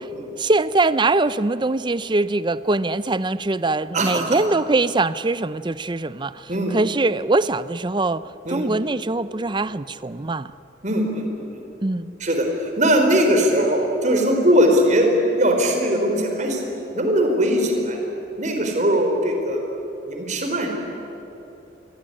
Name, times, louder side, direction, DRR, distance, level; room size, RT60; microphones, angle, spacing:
voice 1, 0.4-10.5 11.8-12.2, right 2 dB, 25° right, 16 dB, 0.6 m, -22 dB
voice 2, 3.9-4.4 6.5-6.7 8.4-8.7 10.8-11.6 12.2-15.1 15.4-16.6 16.9-18.0 18.4-19.6 20.1-20.7, equal, 45° right, 3 dB, 4.2 m, -20 dB
26.5 x 22.0 x 9.8 m, 3.0 s
head